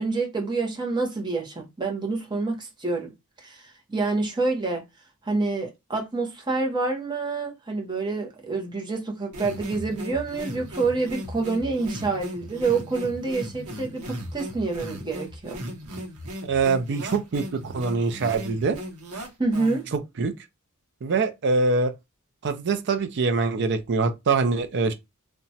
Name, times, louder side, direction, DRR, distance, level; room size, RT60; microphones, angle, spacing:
voice 1, 0.0-3.1 3.4-4.8 5.2-15.6 19.4-19.8, right 3 dB, 20° right, 0.7 m, -27 dB
sound 1, 9.3-20.0, equal, 85° right, 0.8 m, -37 dB
voice 2, 16.4-18.8 20.2-20.3 21.0-21.9 22.4-24.9, right 4 dB, 50° right, 0.4 m, -24 dB
2.9 x 2.2 x 2.7 m
head